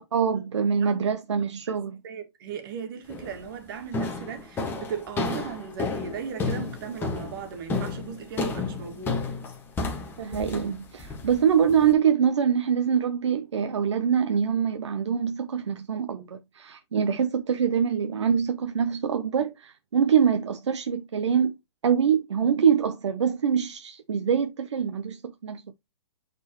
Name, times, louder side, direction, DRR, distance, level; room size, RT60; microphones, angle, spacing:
voice 1, 0.1-2.0 10.2-21.6 21.8-25.7, right 7 dB, 80° right, 0.9 m, -24 dB
voice 2, 2.0-9.2, right 6 dB, 50° right, 2.1 m, -37 dB
sound 1, 3.1-3.4 3.9-11.9, left 3 dB, 15° left, 1.6 m, -31 dB
8.7 x 4.4 x 3.0 m
hypercardioid pair, 140°, 15 cm